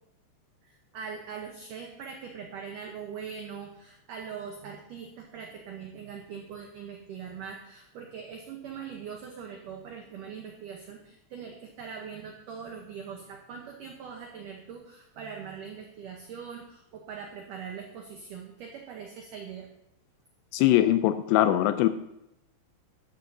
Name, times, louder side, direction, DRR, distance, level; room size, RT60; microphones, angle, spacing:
voice 1, 0.6-19.7, right 6 dB, 85° right, 2 dB, 1.8 m, -42 dB
voice 2, 20.5-21.9, left 13 dB, 85° left, 11 dB, 2.5 m, -22 dB
13.0 x 12.0 x 2.7 m, 0.84 s
omnidirectional pair, 5.1 m